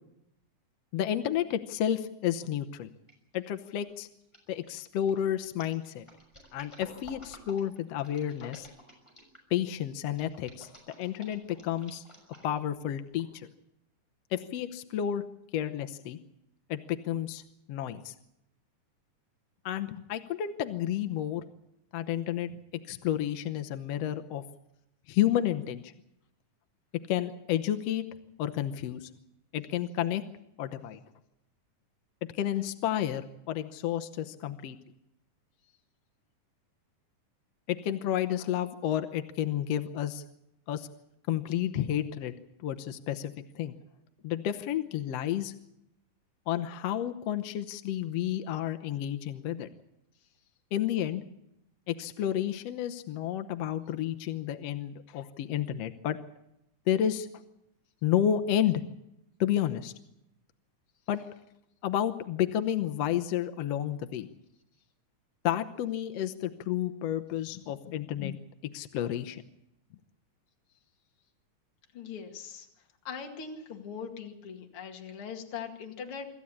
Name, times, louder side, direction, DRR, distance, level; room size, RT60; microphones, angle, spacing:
voice 1, 0.9-2.9 3.3-4.1 4.5-6.0 6.5-8.7 9.5-10.7 11.0-12.0 12.4-13.5 14.3-15.2 15.5-16.2 16.7-17.4 17.7-18.1 19.7-21.4 21.9-22.6 22.9-24.4 25.1-25.9 27.1-28.0 28.4-29.1 29.5-30.2 30.6-31.0 32.4-34.8 37.7-40.2 40.7-40.9 41.3-42.3 42.6-43.7 44.2-45.5 46.5-49.7 50.7-51.2 51.9-56.2 56.9-57.3 58.0-58.8 59.4-59.9 61.1-61.2 61.8-64.3 65.4-68.4 68.7-69.4, left 11 dB, 65° left, 8 dB, 1.7 m, -31 dB
sound 1, 3.1-3.4 3.7-9.5 10.1-12.7 13.2-13.3, left 1 dB, 10° left, 5.9 m, -52 dB
voice 2, 71.9-72.7 73.0-76.3, left 6 dB, 45° left, 2 dB, 2.9 m, -41 dB
26.0 x 14.0 x 8.6 m, 0.83 s
omnidirectional pair, 3.6 m